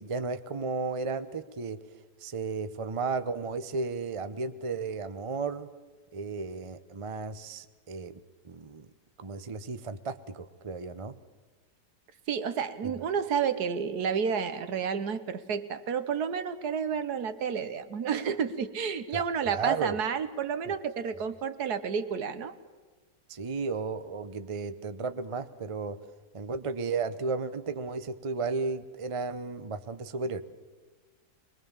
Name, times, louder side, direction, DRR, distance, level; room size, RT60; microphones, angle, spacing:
voice 1, 0.0-1.8 2.2-5.7 6.1-8.2 8.4-8.9 9.2-11.1 12.8-12.9 19.1-19.2 19.5-20.0 23.3-26.0 26.3-30.4, right 4 dB, 45° right, 12 dB, 0.4 m, -34 dB
voice 2, 12.3-22.6, right 7 dB, 65° right, 12 dB, 1.5 m, -30 dB
23.0 x 21.0 x 7.3 m, 1.4 s
omnidirectional pair, 1.9 m